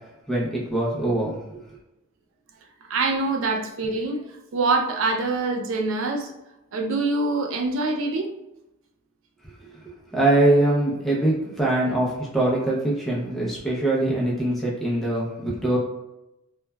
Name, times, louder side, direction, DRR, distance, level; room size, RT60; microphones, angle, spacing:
voice 1, 0.3-1.6 9.6-9.8 10.1-15.8, right 1 dB, ahead, -5 dB, 0.5 m, -23 dB
voice 2, 2.9-4.2 4.5-6.3 6.7-8.3, right 3 dB, 65° right, 3 dB, 0.4 m, -24 dB
3.1 x 2.2 x 2.2 m, 0.91 s
head